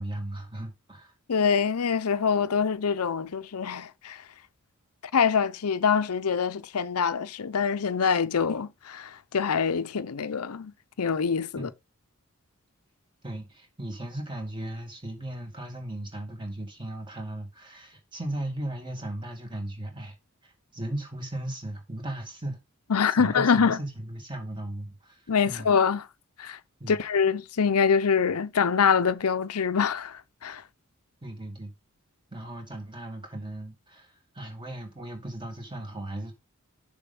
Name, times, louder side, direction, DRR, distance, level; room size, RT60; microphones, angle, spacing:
voice 1, 0.0-1.1 11.6-11.7 13.2-20.1 20.4-22.6 23.1-25.7 26.8-27.0 31.2-31.7 32.3-36.3, right 1 dB, 20° right, 2.3 m, -37 dB
voice 2, 1.3-4.2 5.1-10.7 11.0-11.7 22.9-23.8 25.3-26.1 26.4-26.6 26.9-30.6, left 6 dB, 85° left, 0.6 m, -25 dB
6.8 x 5.2 x 5.5 m
head